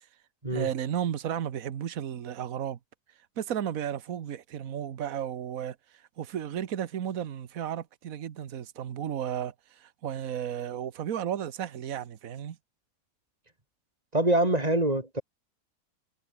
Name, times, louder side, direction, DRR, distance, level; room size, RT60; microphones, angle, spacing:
voice 1, 0.5-2.8 3.4-5.8 6.2-12.6, right 9 dB, 65° right, 1.5 m, -33 dB
voice 2, 14.1-15.2, right 1 dB, 25° right, 3.4 m, -25 dB
omnidirectional pair, 1.6 m